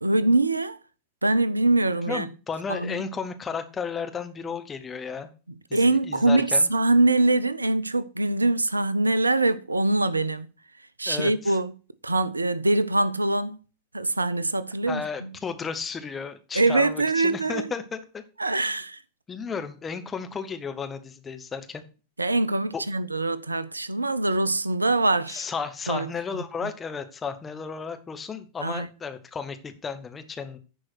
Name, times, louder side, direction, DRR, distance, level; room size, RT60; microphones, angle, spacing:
voice 1, 0.0-0.8 1.2-2.3 2.7-3.0 5.7-10.5 11.0-11.7 12.0-13.6 13.9-15.3 16.5-17.7 18.4-19.0 22.2-25.4 25.9-26.1 26.6-26.7 28.6-28.9, right 2 dB, 80° right, 0.5 m, -23 dB
voice 2, 2.1-5.3 5.7-6.7 11.1-11.6 14.9-18.2 18.5-18.7 19.3-21.8 22.7-22.8 25.3-30.6, left 5 dB, 20° left, 1.1 m, -34 dB
11.0 x 4.6 x 6.1 m
figure-of-eight pair, 90°, 0 cm